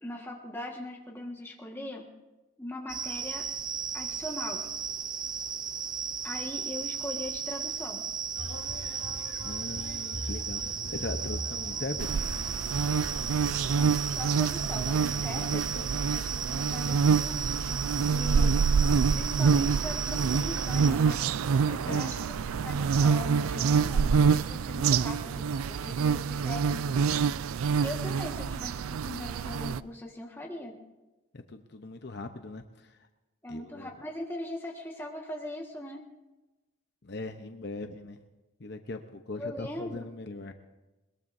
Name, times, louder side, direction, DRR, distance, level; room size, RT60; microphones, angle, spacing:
voice 1, 0.0-2.1 2.6-3.5 3.9-4.7 6.2-8.1 13.7-18.6 19.1-21.3 21.7-22.3 22.6-27.2 27.8-30.8 33.4-36.1 39.4-40.0, left 1 dB, 10° left, -1 dB, 1.6 m, -40 dB
sound 1, 2.9-20.9, right 6 dB, 20° right, 0.5 m, -35 dB
sound 2, 8.4-13.8, left 1 dB, 80° left, 1.5 m, -41 dB
voice 2, 9.4-12.3 15.1-15.9 21.8-22.0 31.3-33.0 33.5-33.9 37.0-38.2 38.6-40.5, left 2 dB, 55° left, 6 dB, 0.8 m, -40 dB
sound 3, 12.0-29.8, right 6 dB, 90° right, 0.4 m, -26 dB
21.5 x 21.0 x 2.7 m, 1.1 s
head